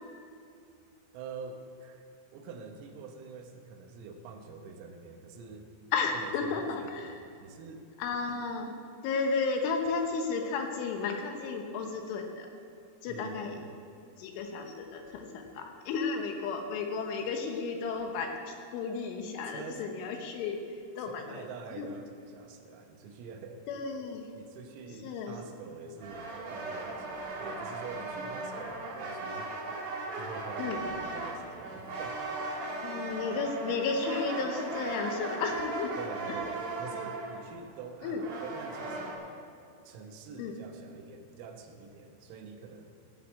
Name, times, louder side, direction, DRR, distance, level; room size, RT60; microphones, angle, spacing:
voice 1, 1.1-2.1 2.3-5.7 6.1-7.9 13.1-13.7 19.5-19.8 21.0-23.7 24.3-29.6 30.1-32.2 36.0-39.3 39.9-42.9, right 5 dB, 80° right, 4 dB, 3.7 m, -46 dB
voice 2, 5.9-7.2 8.0-8.7 9.0-12.5 13.0-13.6 14.2-21.4 21.7-21.9 23.7-24.3 25.0-25.5 30.6-30.8 32.8-36.0 36.3-36.4 38.0-38.2 40.4-40.6, left 4 dB, 75° left, 4 dB, 3.3 m, -33 dB
sound 1, 26.0-39.1, right 3 dB, 65° right, 1.7 m, -38 dB
16.0 x 7.4 x 8.5 m, 2.4 s
omnidirectional pair, 6.0 m